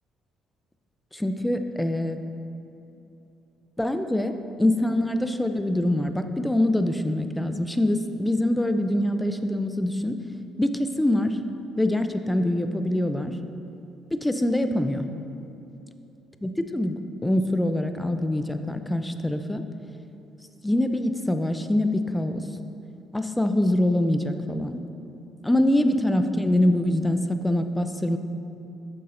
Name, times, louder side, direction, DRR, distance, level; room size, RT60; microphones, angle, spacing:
voice 1, 1.1-2.2 3.8-4.3 4.6-10.1 10.6-11.4 11.8-13.3 14.1-15.0 16.4-17.0 17.2-19.6 20.6-22.4 23.1-24.8 25.4-28.2, left 1 dB, 10° left, 8 dB, 0.5 m, -24 dB
9.5 x 6.6 x 2.6 m, 2.8 s
hypercardioid pair, 55°, 0 cm